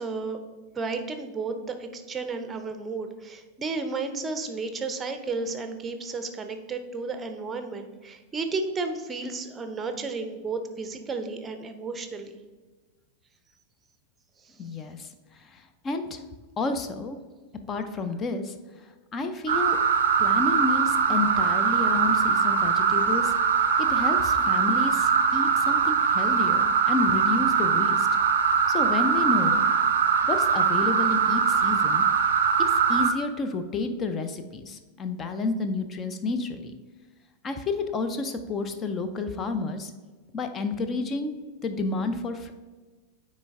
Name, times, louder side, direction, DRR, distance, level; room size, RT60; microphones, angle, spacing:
voice 1, 0.0-12.4 14.4-14.6, right 4 dB, 20° right, 7 dB, 0.7 m, -33 dB
voice 2, 14.6-16.2 16.6-17.2 17.7-19.8 20.2-23.3 23.8-28.1 28.7-29.6 30.3-32.0 32.7-36.7 37.4-39.9 40.3-41.3 41.6-42.5, left 3 dB, 25° left, 8 dB, 0.6 m, -30 dB
sound 1, 19.5-33.1, right 6 dB, 65° right, 0.5 m, -22 dB
9.0 x 3.2 x 3.6 m, 1.3 s
figure-of-eight pair, 90°, 0 cm